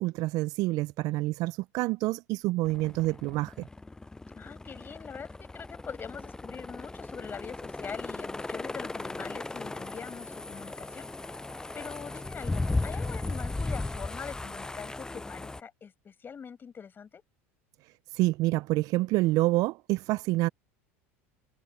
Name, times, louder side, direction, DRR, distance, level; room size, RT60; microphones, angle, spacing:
voice 1, 0.0-3.7 18.1-20.5, right 19 dB, 55° right, 0.5 m, -27 dB
sound 1, 2.6-15.6, left 2 dB, 10° left, 0.5 m, -36 dB
voice 2, 4.3-11.1 11.7-17.2, left 6 dB, 30° left, 6.0 m, -43 dB
hypercardioid pair, 90°, 7 cm